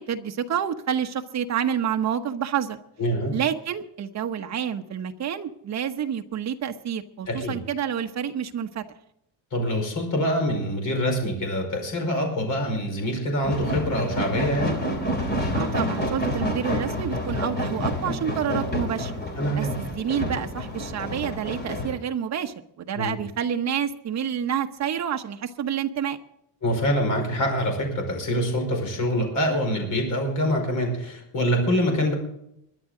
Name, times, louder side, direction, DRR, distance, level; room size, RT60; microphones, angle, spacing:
voice 1, 0.0-2.8 3.3-8.8 15.5-19.1 19.6-26.2, right 8 dB, 35° right, 6 dB, 1.0 m, -28 dB
voice 2, 3.0-3.3 7.3-7.6 9.5-14.8 19.4-19.7 23.0-23.2 26.6-32.1, equal, 40° left, 3 dB, 5.2 m, -25 dB
sound 1, 13.4-21.9, equal, 25° left, 3.2 m, -28 dB
22.0 x 11.0 x 3.8 m, 0.75 s
cardioid pair, 170°, 45 cm